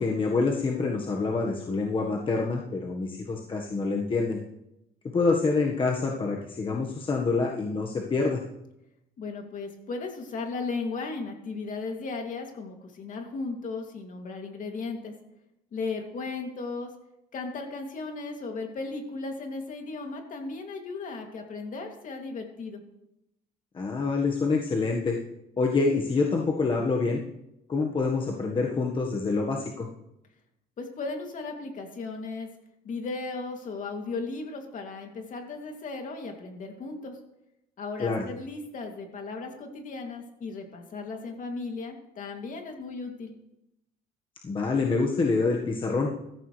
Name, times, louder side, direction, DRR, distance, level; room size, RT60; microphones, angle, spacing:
voice 1, 0.0-4.4 5.1-8.4 23.7-25.2 25.6-27.2 27.7-29.9 38.0-38.2 44.4-46.1, left 4 dB, 30° left, 0 dB, 1.5 m, -26 dB
voice 2, 9.2-15.1 15.7-16.9 17.3-22.8 30.8-32.5 32.8-37.2 37.8-43.4, left 3 dB, 50° left, 3 dB, 2.8 m, -36 dB
15.5 x 14.0 x 3.3 m, 0.87 s
cardioid pair, 110°, 17 cm